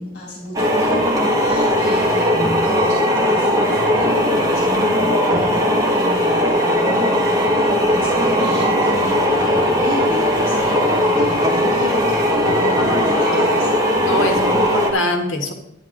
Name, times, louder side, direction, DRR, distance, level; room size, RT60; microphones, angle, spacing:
voice 1, 0.0-13.9, left 1 dB, 50° left, -4 dB, 3.5 m, -31 dB
sound 1, 0.5-14.9, equal, 20° right, 1.7 m, -18 dB
voice 2, 12.4-13.5 14.0-15.5, left 1 dB, 75° left, 2 dB, 1.8 m, -24 dB
10.5 x 10.5 x 3.9 m, 0.84 s
head